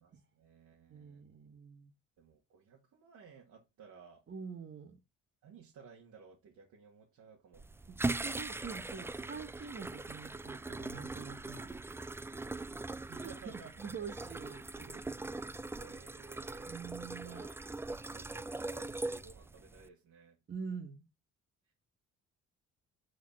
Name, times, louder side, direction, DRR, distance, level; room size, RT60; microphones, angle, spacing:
voice 1, 0.0-1.2 2.2-4.2 5.4-7.6 12.9-14.1 15.8-16.8 17.2-17.7 18.1-20.4, right 6 dB, 70° right, 2.0 m, -56 dB
voice 2, 0.9-1.9 4.3-5.0 7.9-8.0 8.2-12.1 13.2-15.0 16.7-17.4 20.5-21.1, right 5 dB, 40° right, 1.7 m, -46 dB
sound 1, 7.5-19.9, right 2 dB, 10° right, 0.3 m, -41 dB
6.4 x 4.1 x 6.3 m
cardioid pair, 90°, 30 cm